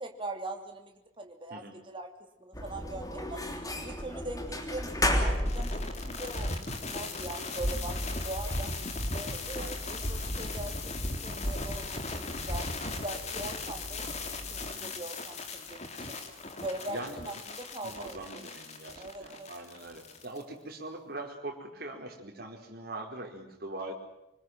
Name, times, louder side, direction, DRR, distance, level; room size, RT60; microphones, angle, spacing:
voice 1, 0.0-2.1 2.4-3.4 3.8-8.7 9.1-12.7 13.0-14.0 14.5-16.2 16.6-18.4 18.9-19.5, right 2 dB, 25° right, 4 dB, 2.9 m, -41 dB
sound 1, 2.5-14.7, left 1 dB, 20° left, 3.3 m, -36 dB
sound 2, 5.2-20.4, left 2 dB, 35° left, 3.0 m, -37 dB
voice 2, 16.9-17.2 17.8-23.9, right 2 dB, 50° right, 2 dB, 4.6 m, -42 dB
25.5 x 20.5 x 7.8 m, 0.89 s
head